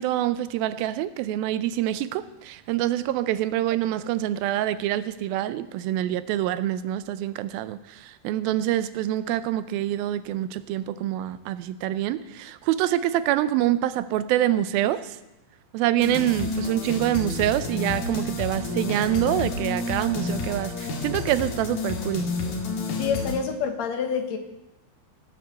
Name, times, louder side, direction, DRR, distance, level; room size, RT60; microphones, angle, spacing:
voice 1, 0.0-15.2 15.7-22.3, right 13 dB, 90° right, 14 dB, 2.5 m, -26 dB
sound 1, 16.0-23.3, left 3 dB, 80° left, 3.8 m, -30 dB
voice 2, 23.0-24.4, left 6 dB, 60° left, 6 dB, 2.1 m, -27 dB
17.5 x 7.9 x 6.8 m, 0.94 s
omnidirectional pair, 4.1 m